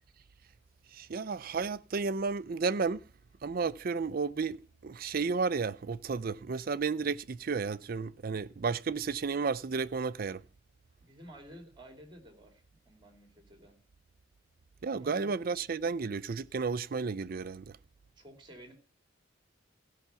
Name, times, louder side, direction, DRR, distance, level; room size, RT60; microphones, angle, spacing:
voice 1, 0.9-3.0 3.4-10.4 14.8-17.8, right 4 dB, 50° right, 0.5 m, -32 dB
voice 2, 11.0-13.8 15.0-15.3 18.2-18.7, equal, 25° right, 2.8 m, -52 dB
15.5 x 5.8 x 6.9 m
head